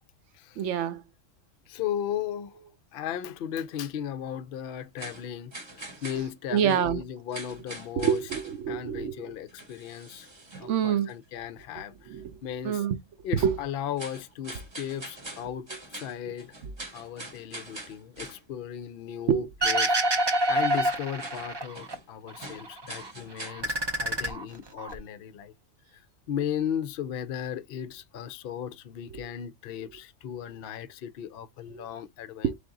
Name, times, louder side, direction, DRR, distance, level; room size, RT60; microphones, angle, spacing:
voice 1, 0.6-1.0 6.2-6.3 6.5-7.0 7.9-9.3 10.6-11.1 11.7-12.4 12.6-13.0 13.3-13.6 16.6-16.7 19.3-19.5 29.1-29.3 31.7-31.8 32.4-32.5, right 8 dB, 70° right, 0.9 m, -27 dB
voice 2, 1.7-2.6 2.9-5.5 6.0-8.2 8.7-10.3 10.6-12.1 12.4-12.8 13.2-15.7 15.9-16.5 16.9-20.0 20.5-25.5 26.3-32.6, left 9 dB, 60° left, 0.6 m, -36 dB
sound 1, 5.0-7.0 7.3-8.7 9.5-10.8 11.1-11.3 14.0-18.5 21.2-22.1 22.4-23.5, right 2 dB, 25° right, 0.8 m, -43 dB
sound 2, 19.6-21.9 22.3-23.1 23.4-25.0, right 1 dB, 40° right, 0.3 m, -27 dB
3.6 x 3.5 x 3.8 m
omnidirectional pair, 1.4 m